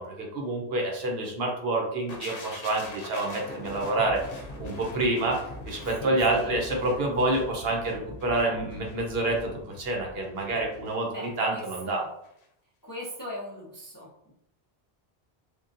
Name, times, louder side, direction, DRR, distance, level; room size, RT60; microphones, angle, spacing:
voice 1, 0.0-5.4 5.7-12.0, right 2 dB, 70° right, 0 dB, 0.9 m, -28 dB
sound 1, 2.1-12.0 12.2-12.4, left 1 dB, 65° left, 0.8 m, -43 dB
voice 2, 6.0-6.5 11.1-12.1 12.8-14.3, equal, 25° left, -6 dB, 0.4 m, -40 dB
3.7 x 2.2 x 2.5 m, 0.76 s
omnidirectional pair, 1.1 m